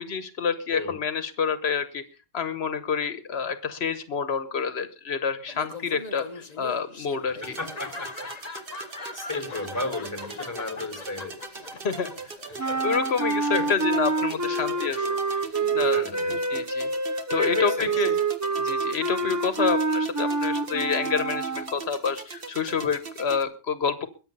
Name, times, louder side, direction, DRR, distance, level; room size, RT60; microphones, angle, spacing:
voice 1, 0.0-2.0 2.3-7.6 11.7-12.1 12.6-16.0 16.5-16.9 17.3-18.2 18.6-24.1, left 6 dB, 85° left, 12 dB, 1.3 m, -28 dB
Laughter, 5.5-15.8, left 3 dB, 40° left, 1.3 m, -41 dB
voice 2, 7.4-8.4 9.1-11.4 12.7-12.8 13.5-13.7 15.8-16.6 17.1-17.9, left 2 dB, 15° left, 6 dB, 4.5 m, -33 dB
sound 1, 7.4-23.4, right 4 dB, 60° right, 1.8 m, -41 dB
sound 2, 12.6-21.7, right 3 dB, 20° right, 0.7 m, -27 dB
22.0 x 7.8 x 5.4 m, 0.36 s
omnidirectional pair, 1.0 m